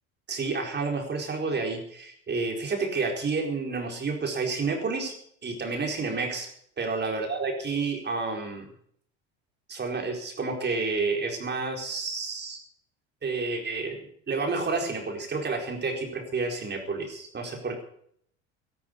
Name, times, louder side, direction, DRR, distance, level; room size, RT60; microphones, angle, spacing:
voice 1, 0.3-5.1 5.4-6.5 6.8-8.7 9.7-12.6 13.2-17.8, right 4 dB, 30° right, 3 dB, 4.5 m, -30 dB
13.0 x 12.0 x 8.1 m, 0.67 s
hypercardioid pair, 80°, 33 cm